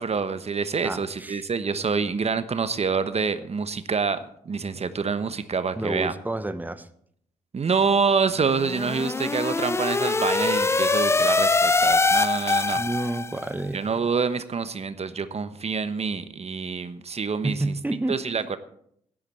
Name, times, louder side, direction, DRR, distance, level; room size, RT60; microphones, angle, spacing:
voice 1, 0.0-6.1 7.5-12.8 13.7-17.7 18.1-18.6, right 5 dB, 40° right, 12 dB, 1.1 m, -26 dB
voice 2, 0.8-1.4 5.8-6.9 12.7-13.8 17.4-18.2, right 2 dB, 10° right, 11 dB, 1.1 m, -29 dB
sound 1, 8.5-13.5, left 3 dB, 15° left, 0.5 m, -23 dB
16.5 x 11.5 x 4.5 m, 0.69 s
hypercardioid pair, 40°, 17 cm